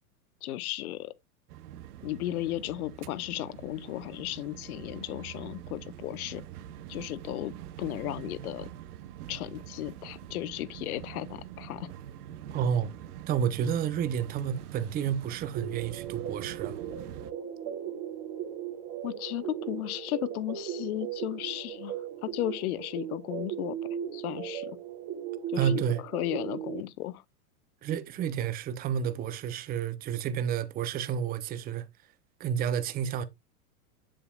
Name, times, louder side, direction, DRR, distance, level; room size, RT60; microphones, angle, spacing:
voice 1, 0.4-1.1 2.0-6.4 6.9-7.5 7.8-8.7 9.3-11.9 19.0-22.0 22.2-23.8 24.1-24.8 25.5-25.8 26.1-27.2, left 15 dB, 70° left, 0.8 m, -35 dB
sound 1, 1.5-17.3, right 11 dB, 75° right, 0.8 m, -45 dB
voice 2, 12.5-12.9 13.3-16.8 25.6-26.0 27.8-31.9 32.4-33.2, right 8 dB, 20° right, 0.6 m, -30 dB
sound 2, 15.5-26.8, right 9 dB, 45° right, 1.8 m, -37 dB
7.4 x 6.9 x 2.3 m
hypercardioid pair, 120°, 45 cm